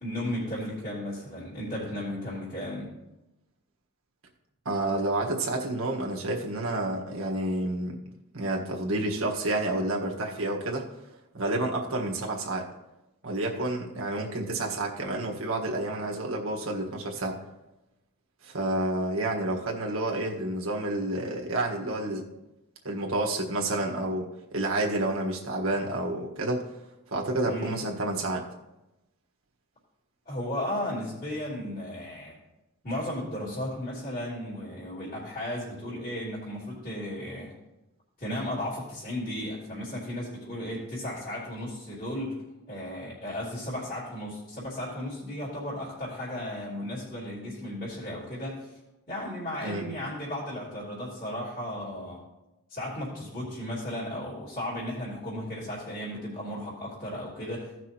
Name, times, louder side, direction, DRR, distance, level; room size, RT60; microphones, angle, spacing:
voice 1, 0.0-2.9 27.5-27.8 30.2-32.3 32.8-37.5 38.2-42.4 42.7-48.7 49.1-52.3 52.7-57.7, left 1 dB, 40° left, -11 dB, 3.2 m, -35 dB
voice 2, 4.6-8.0 8.3-10.8 11.3-12.7 13.2-17.4 18.4-22.3 22.8-26.7 27.1-28.4 49.6-49.8, right 2 dB, 75° right, 0 dB, 1.6 m, -29 dB
16.5 x 6.1 x 3.0 m, 0.97 s
head